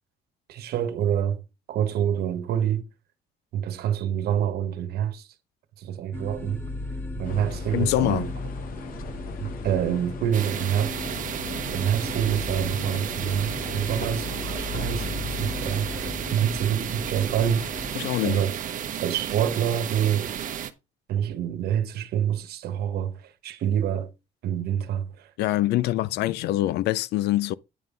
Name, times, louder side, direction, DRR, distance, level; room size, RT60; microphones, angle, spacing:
voice 1, 0.5-1.4 1.7-2.9 3.5-5.3 5.8-6.6 7.2-8.3 9.4-10.9 11.7-17.9 18.2-18.5 19.0-20.3 21.1-24.1 24.4-25.3, right 9 dB, 70° right, 1.3 m, -27 dB
sound 1, 6.1-18.0, left 2 dB, 10° left, 1.2 m, -36 dB
sound 2, 7.2-16.1, left 7 dB, 55° left, 1.0 m, -41 dB
voice 2, 7.7-8.3 18.0-18.4 25.4-27.5, left 15 dB, 75° left, 0.5 m, -24 dB
sound 3, 10.3-20.7, right 9 dB, 50° right, 0.9 m, -33 dB
9.2 x 5.5 x 3.8 m
cardioid pair, 110°, 17 cm